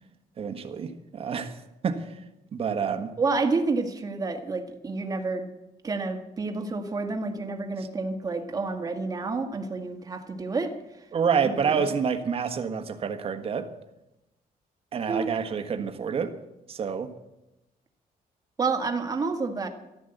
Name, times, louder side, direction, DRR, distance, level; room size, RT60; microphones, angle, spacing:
voice 1, 0.4-1.6 1.8-2.0 2.5-3.1 11.1-13.7 14.9-16.3 16.7-17.1, right 6 dB, 40° right, 7 dB, 1.4 m, -28 dB
voice 2, 3.2-5.5 5.8-11.0 11.4-11.8 15.1-15.3 18.6-19.7, right 3 dB, 25° right, 5 dB, 1.7 m, -29 dB
14.0 x 12.5 x 7.9 m, 0.94 s
cardioid pair, 160°, 15 cm